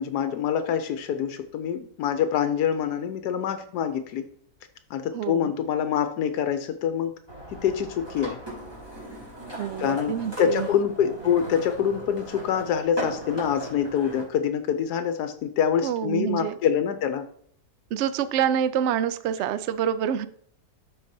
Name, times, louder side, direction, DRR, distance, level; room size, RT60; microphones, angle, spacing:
voice 1, 0.0-4.3 4.9-7.1 7.6-8.4 9.8-17.2, left 8 dB, 80° left, 9 dB, 1.2 m, -25 dB
voice 2, 5.1-5.5 9.6-10.7 15.8-16.6 17.9-20.3, right 9 dB, 75° right, 13 dB, 0.6 m, -26 dB
sound 1, 7.3-14.2, right 1 dB, 15° right, 2.4 m, -38 dB
12.5 x 4.6 x 2.7 m, 0.62 s
omnidirectional pair, 1.7 m